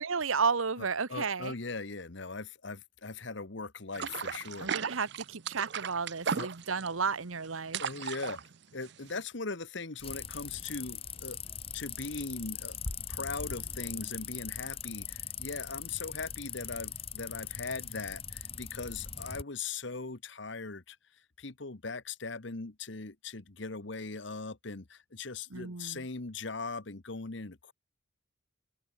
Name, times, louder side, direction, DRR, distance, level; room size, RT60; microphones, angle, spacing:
voice 1, 0.0-1.5 4.6-7.8 25.5-26.0, right 5 dB, 85° right, 1.2 m, -32 dB
voice 2, 0.8-4.9 6.3-6.5 7.8-8.4 8.7-11.4 11.7-12.7 13.1-18.2 18.6-20.9 21.4-24.8 25.1-27.7, left 3 dB, 60° left, 1.3 m, -40 dB
sound 1, 3.9-9.2, right 6 dB, 55° right, 0.6 m, -36 dB
sound 2, 10.0-19.4, left 7 dB, 30° left, 1.2 m, -40 dB
open air
head